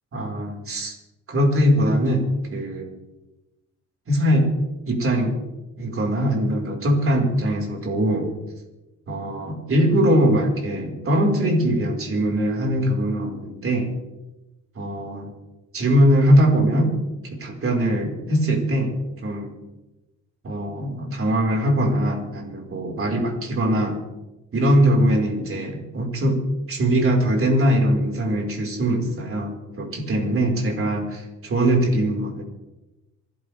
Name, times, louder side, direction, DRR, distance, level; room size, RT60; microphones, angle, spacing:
voice 1, 0.1-1.0 1.3-2.9 4.1-4.5 4.9-5.4 5.8-8.3 9.1-13.9 14.8-15.3 15.7-17.0 17.2-18.9 19.2-19.5 20.4-24.0 24.5-26.4 26.7-32.4, equal, 45° right, 0 dB, 5.2 m, -21 dB
27.5 x 12.0 x 3.6 m, 1.0 s
cardioid pair, 90°, 30 cm